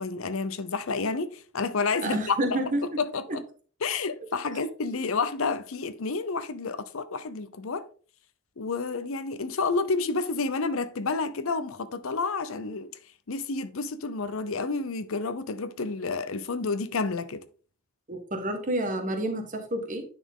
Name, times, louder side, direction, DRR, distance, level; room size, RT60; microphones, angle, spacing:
voice 1, 0.0-2.6 3.0-3.4 3.8-7.9 8.6-12.9 13.3-17.4, left 4 dB, 70° left, 0.6 m, -30 dB
voice 2, 2.0-2.8 3.3-3.4 18.1-20.0, right 1 dB, 35° right, 1.3 m, -29 dB
10.0 x 4.3 x 3.6 m
head